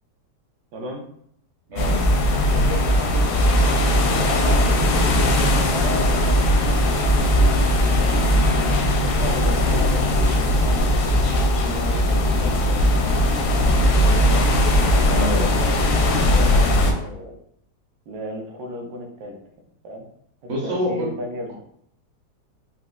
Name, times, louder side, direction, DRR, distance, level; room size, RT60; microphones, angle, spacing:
voice 1, 1.7-2.0 15.0-15.4 20.5-21.1, equal, 50° right, -3 dB, 0.9 m, -26 dB
sound 1, 1.8-16.9, left 1 dB, 70° left, 0.8 m, -19 dB
voice 2, 2.5-5.1 5.7-7.7 8.1-8.3 8.9-10.8 11.6-12.8 14.2-17.4 18.1-19.4 19.8-20.0 20.4-21.5, equal, 70° right, 1 dB, 1.2 m, -34 dB
4.1 x 2.4 x 2.3 m, 0.68 s
omnidirectional pair, 1.8 m